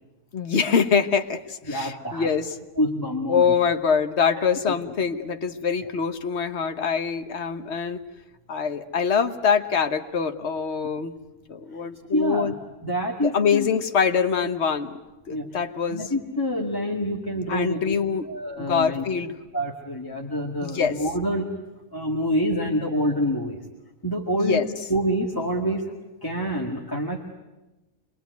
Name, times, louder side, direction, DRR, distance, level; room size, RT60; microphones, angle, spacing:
voice 1, 0.3-2.6 3.3-8.0 8.5-11.1 11.5-12.5 13.2-15.0 15.3-16.1 17.5-18.3 18.6-19.4 20.6-21.0 24.4-24.7, left 6 dB, 55° left, 7 dB, 1.5 m, -24 dB
voice 2, 1.7-2.3 2.8-3.4 4.3-4.5 12.1-12.5 12.8-13.7 15.3-15.4 15.9-18.0 18.3-19.0 19.5-21.5 21.9-23.6 24.0-24.6 24.9-25.9 26.2-27.3, equal, 15° left, -2 dB, 2.1 m, -26 dB
27.5 x 22.0 x 9.3 m, 1.1 s
omnidirectional pair, 1.4 m